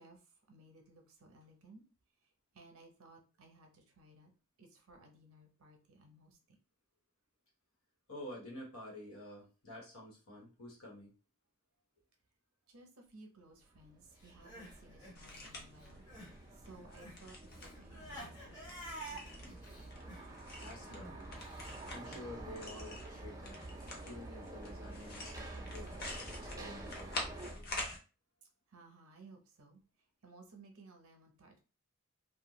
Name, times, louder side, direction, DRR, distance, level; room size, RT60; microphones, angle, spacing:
voice 1, 0.0-1.8 2.5-4.3 4.6-6.6 12.7-19.2 28.7-29.8 30.2-31.6, right 2 dB, 75° right, 3 dB, 0.7 m, -59 dB
voice 2, 8.1-11.1 20.6-21.3 21.9-25.9 26.4-27.1, left 1 dB, 75° left, -2 dB, 1.2 m, -50 dB
sound 1, 13.7-27.6, right 2 dB, 15° right, 0.4 m, -50 dB
Crying sobbing, 14.2-16.4 16.6-21.7, right 1 dB, 20° left, 1.1 m, -50 dB
sound 2, 15.1-28.0, left 2 dB, 45° left, 0.6 m, -47 dB
2.5 x 2.2 x 3.0 m, 0.33 s
head